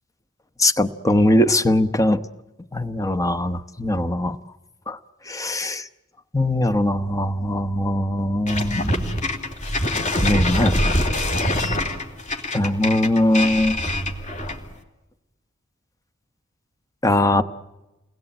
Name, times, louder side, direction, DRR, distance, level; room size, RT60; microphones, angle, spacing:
voice 1, 0.6-2.2 2.7-4.4 4.9-5.0 5.2-5.9 6.3-8.9 10.2-10.8 12.5-13.8 17.0-17.4, left 1 dB, 15° left, 10 dB, 1.0 m, -20 dB
sound 1, 8.5-14.7, left 1 dB, 35° left, 3.2 m, -24 dB
29.5 x 21.0 x 9.0 m, 1.1 s
head